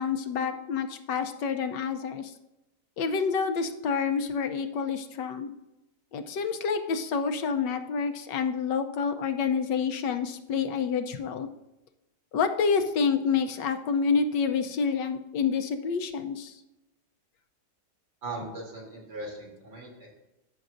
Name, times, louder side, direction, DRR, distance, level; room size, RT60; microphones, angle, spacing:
voice 1, 0.0-2.3 3.0-5.5 6.1-11.5 12.3-16.5, left 5 dB, 80° left, 7 dB, 1.5 m, -28 dB
voice 2, 18.2-20.1, right 2 dB, 70° right, -2 dB, 3.8 m, -39 dB
14.0 x 6.2 x 2.6 m, 0.95 s
omnidirectional pair, 1.9 m